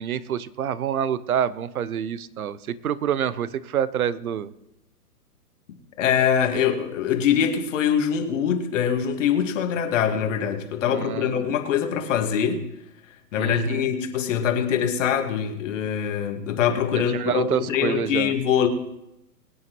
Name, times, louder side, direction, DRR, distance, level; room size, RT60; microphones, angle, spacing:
voice 1, 0.0-4.5 10.8-11.4 13.4-13.9 16.9-18.3, right 9 dB, 65° right, 17 dB, 0.9 m, -27 dB
voice 2, 6.0-12.6 13.3-18.7, left 8 dB, 50° left, 5 dB, 2.0 m, -23 dB
22.5 x 9.6 x 3.1 m, 0.85 s
figure-of-eight pair, 115°, 47 cm